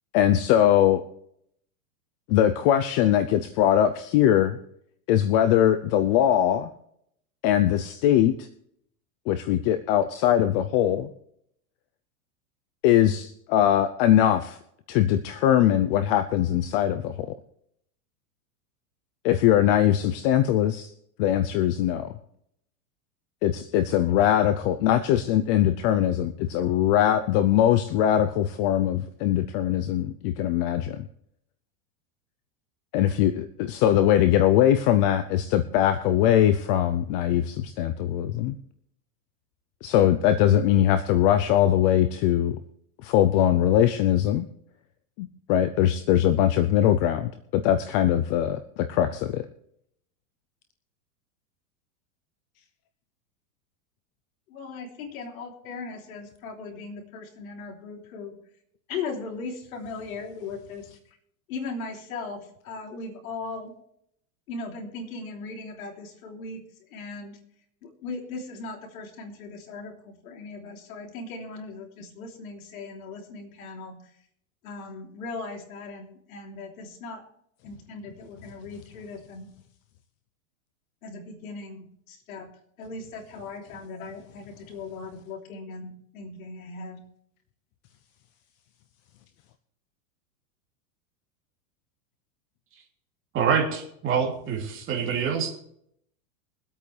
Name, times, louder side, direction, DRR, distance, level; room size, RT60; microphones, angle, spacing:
voice 1, 0.1-1.0 2.3-4.6 5.1-6.7 7.4-8.5 9.3-11.1 12.8-14.6 14.9-17.3 19.2-20.9 21.2-22.1 23.4-31.1 32.9-38.6 39.8-42.6 43.0-44.5 45.2-49.5, left 11 dB, 40° left, 11 dB, 0.6 m, -21 dB
voice 2, 54.5-58.4 58.9-61.0 61.5-63.7 64.5-67.4 67.8-74.1 74.6-77.2 77.6-79.5 81.0-82.5 82.8-87.0, left 4 dB, 75° left, 2 dB, 3.3 m, -38 dB
voice 3, 93.3-95.5, right 6 dB, 30° right, 0 dB, 2.9 m, -26 dB
23.0 x 8.6 x 3.3 m, 0.71 s
supercardioid pair, 150°, 43 cm